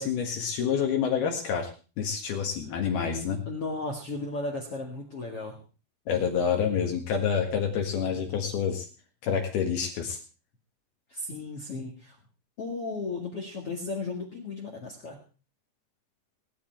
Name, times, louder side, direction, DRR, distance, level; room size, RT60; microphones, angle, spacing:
voice 1, 0.0-1.7 2.0-3.4 6.1-8.9 9.2-10.2, left 7 dB, 65° left, 2 dB, 3.4 m, -28 dB
voice 2, 3.1-5.6 11.1-12.2 12.6-15.2, left 3 dB, 45° left, 1 dB, 2.1 m, -35 dB
19.5 x 10.0 x 4.5 m, 0.36 s
omnidirectional pair, 5.3 m